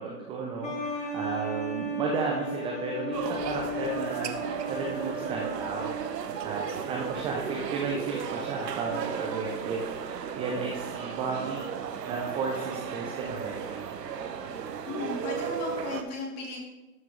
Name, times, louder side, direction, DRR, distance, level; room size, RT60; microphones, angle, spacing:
voice 1, 0.0-5.9 6.2-11.7 12.1-13.9, right 4 dB, 10° right, -1 dB, 0.4 m, -34 dB
sound 1, 0.6-6.9, right 1 dB, 15° left, 1.0 m, -35 dB
sound 2, 3.1-16.0, right 7 dB, 80° right, 0.9 m, -35 dB
voice 2, 14.8-16.7, left 2 dB, 30° left, -2 dB, 3.0 m, -35 dB
12.0 x 5.9 x 3.2 m, 1.1 s
hypercardioid pair, 115°, 48 cm